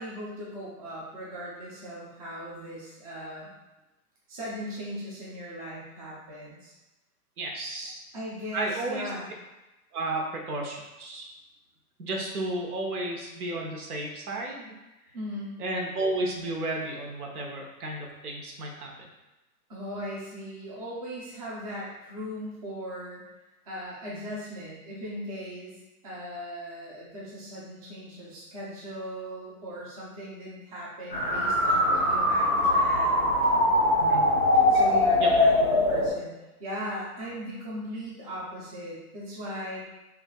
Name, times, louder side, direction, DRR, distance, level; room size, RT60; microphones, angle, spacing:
voice 1, 0.0-3.5 4.3-6.7 8.1-9.3 15.1-15.6 19.7-23.2 23.7-25.8 26.0-33.3 34.7-39.8, equal, 25° right, -6 dB, 0.6 m, -38 dB
voice 2, 7.4-8.0 8.5-9.1 9.9-11.3 12.0-14.7 15.6-19.1 34.0-34.3 35.2-35.3, right 2 dB, 70° right, 0 dB, 1.1 m, -33 dB
sound 1, 31.1-36.1, left 1 dB, 10° left, 0.8 m, -22 dB
5.8 x 2.5 x 2.3 m, 1.0 s
hypercardioid pair, 160°, 46 cm